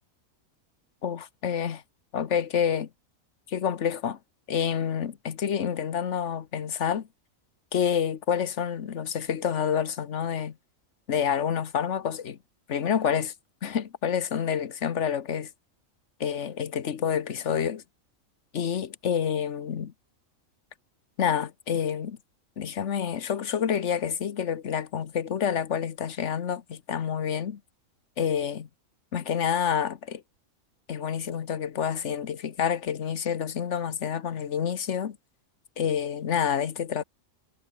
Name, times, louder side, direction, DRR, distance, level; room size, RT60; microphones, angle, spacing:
voice 1, 1.0-1.8 2.1-2.9 3.5-4.2 4.5-7.1 7.7-10.5 11.1-12.4 12.7-13.3 13.6-15.5 16.2-17.8 18.5-19.9 21.2-22.2 22.6-27.6 28.2-28.7 29.1-30.2 30.9-35.2 35.8-37.0, left 8 dB, 60° left, 1.3 m, -28 dB
omnidirectional pair, 1.5 m